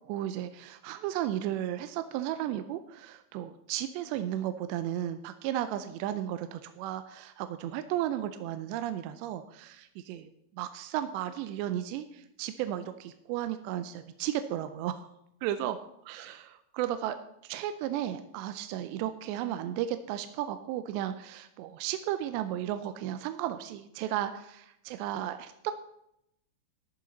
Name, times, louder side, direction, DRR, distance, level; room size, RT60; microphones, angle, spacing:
voice 1, 0.1-15.1 15.4-15.8 16.1-17.2 17.4-25.7, right 12 dB, 85° right, 9 dB, 2.7 m, -34 dB
14.0 x 10.5 x 4.0 m, 0.78 s
omnidirectional pair, 5.1 m